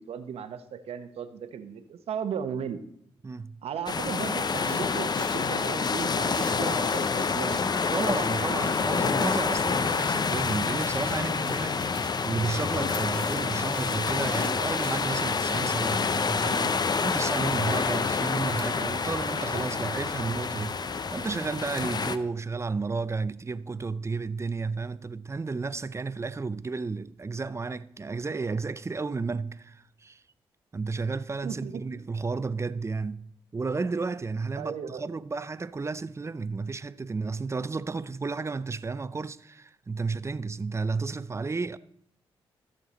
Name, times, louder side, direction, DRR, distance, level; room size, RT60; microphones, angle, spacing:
voice 1, 0.0-2.8 3.6-8.0 31.4-32.0 34.6-35.0, right 7 dB, 75° right, 0.9 m, -36 dB
voice 2, 3.2-3.6 7.9-30.2 30.7-41.8, right 4 dB, 25° right, 0.5 m, -32 dB
sound 1, 3.9-22.2, left 5 dB, 40° left, 0.6 m, -28 dB
sound 2, 4.4-17.2, equal, 10° left, 1.8 m, -48 dB
sound 3, 12.7-19.9, left 6 dB, 70° left, 0.9 m, -47 dB
14.0 x 6.7 x 4.1 m
supercardioid pair, 55°, 10 cm